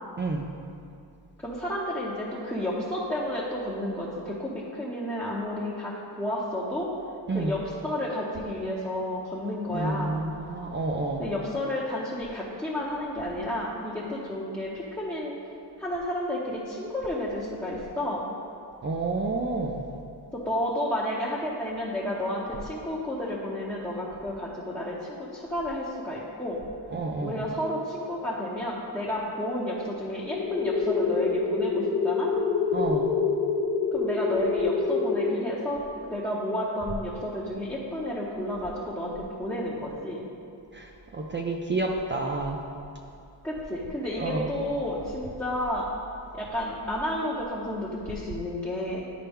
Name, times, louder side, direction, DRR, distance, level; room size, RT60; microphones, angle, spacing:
voice 1, 1.4-6.9 7.3-10.1 11.2-15.4 15.8-18.2 20.3-26.6 27.2-32.3 33.9-40.2 43.4-45.9 46.3-49.1, left 1 dB, 5° left, -7 dB, 0.8 m, -31 dB
voice 2, 9.7-11.3 18.8-19.8 26.9-27.4 32.7-33.1 40.7-42.6 44.2-44.5, right 3 dB, 25° right, 1 dB, 0.4 m, -29 dB
sound 1, 30.3-35.3, left 4 dB, 90° left, 0.8 m, -26 dB
10.0 x 4.4 x 3.6 m, 2.5 s
cardioid pair, 105°, 43 cm